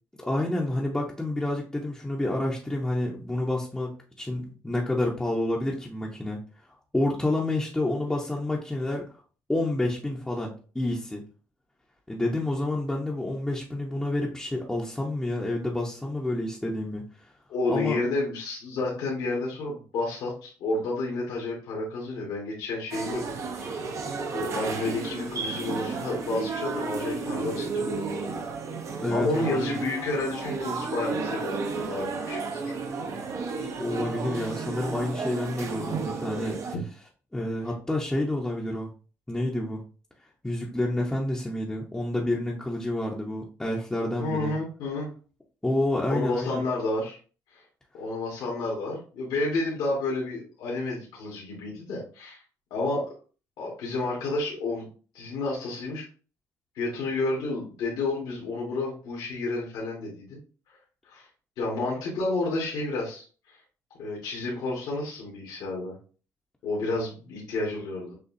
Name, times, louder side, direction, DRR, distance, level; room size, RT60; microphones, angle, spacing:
voice 1, 0.2-6.4 6.9-9.2 9.5-11.2 12.1-17.3 17.7-18.0 29.0-29.8 33.8-36.7 37.3-38.9 39.3-39.8 40.4-44.5 45.6-46.6, left 1 dB, 10° left, -3 dB, 0.8 m, -29 dB
voice 2, 17.5-23.8 24.3-28.5 29.1-32.7 36.7-36.8 44.2-45.1 46.1-47.2 47.5-47.6 47.9-52.4 52.7-53.1 53.6-54.9 55.1-56.1 56.7-60.4 61.0-61.3 61.6-63.6 64.0-66.0 66.6-68.1, left 2 dB, 80° left, -4 dB, 1.6 m, -30 dB
sound 1, 22.9-36.8, right 4 dB, 50° right, 0.8 m, -33 dB
6.6 x 2.3 x 2.6 m, 0.38 s
cardioid pair, 105°, 7 cm